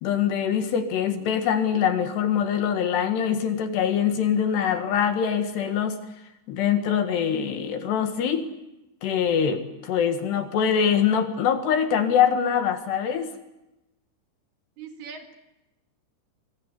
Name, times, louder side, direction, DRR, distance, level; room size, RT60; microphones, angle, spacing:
voice 1, 0.0-6.0 6.5-8.5 9.0-13.3, left 8 dB, 65° left, 7 dB, 3.7 m, -23 dB
voice 2, 14.8-15.3, right 6 dB, 60° right, 5 dB, 3.8 m, -40 dB
26.5 x 22.0 x 9.8 m, 0.95 s
omnidirectional pair, 5.5 m